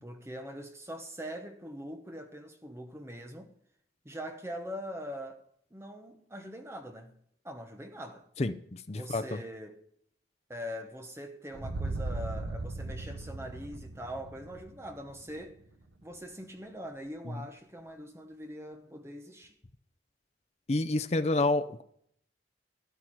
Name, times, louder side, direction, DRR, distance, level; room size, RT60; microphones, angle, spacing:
voice 1, 0.0-3.5 4.0-5.4 5.7-7.1 7.4-8.3 8.9-9.8 10.5-15.6 16.0-19.5, equal, 15° right, 1.0 m, -42 dB
voice 2, 8.9-9.2 20.7-21.8, left 2 dB, 35° left, 0.6 m, -28 dB
sound 1, 11.5-15.6, right 2 dB, 75° right, 1.0 m, -38 dB
13.0 x 10.5 x 4.7 m
head